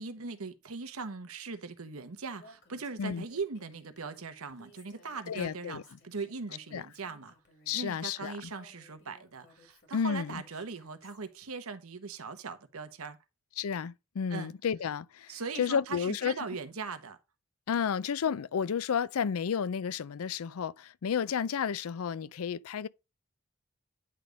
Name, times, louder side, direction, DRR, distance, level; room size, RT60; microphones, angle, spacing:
voice 1, 0.0-7.3 7.7-13.2 14.3-14.5 15.3-17.2, right 4 dB, 90° right, 1.0 m, -40 dB
Female speech woman speaking, 2.4-11.2, left 2 dB, 55° left, 2.2 m, -59 dB
voice 2, 5.3-5.8 6.7-6.8 7.7-8.5 9.9-10.4 13.6-16.3 17.7-22.9, left 7 dB, 90° left, 0.4 m, -32 dB
9.8 x 3.5 x 5.1 m
head